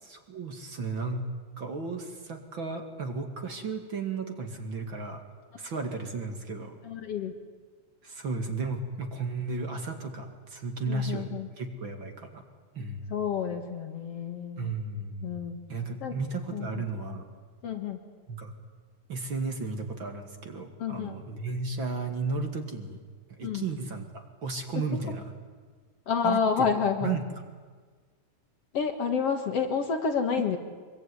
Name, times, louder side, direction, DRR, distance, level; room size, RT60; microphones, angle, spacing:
voice 1, 0.0-1.3 1.6-5.2 5.6-6.8 8.0-11.3 11.6-12.4 12.7-13.1 14.6-15.4 15.7-17.3 18.3-18.5 19.1-23.0 23.3-25.3 26.2-26.7 27.0-27.2, right 3 dB, 40° right, 5 dB, 2.6 m, -34 dB
voice 2, 6.8-7.3 10.9-11.5 13.1-14.7 15.2-15.6 16.0-16.2 16.5-16.8 17.6-18.0 20.8-21.2 23.4-23.6 26.1-27.2 28.7-30.6, left 6 dB, 55° left, 6 dB, 2.4 m, -29 dB
24.5 x 22.5 x 9.8 m, 1.5 s
omnidirectional pair, 3.6 m